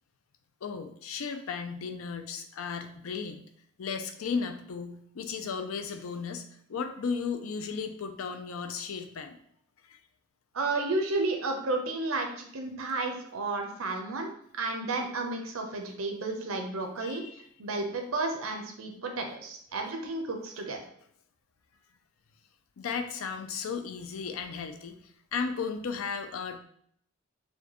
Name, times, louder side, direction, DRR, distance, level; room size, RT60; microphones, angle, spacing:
voice 1, 0.6-3.4 3.8-6.4 6.7-9.4 9.9-10.0 17.0-17.3 22.8-25.0 25.3-26.6, left 5 dB, 80° left, 7 dB, 0.4 m, -35 dB
voice 2, 10.5-17.2 17.6-20.8, right 2 dB, 85° right, 3 dB, 0.7 m, -32 dB
4.3 x 2.2 x 2.9 m, 0.67 s
head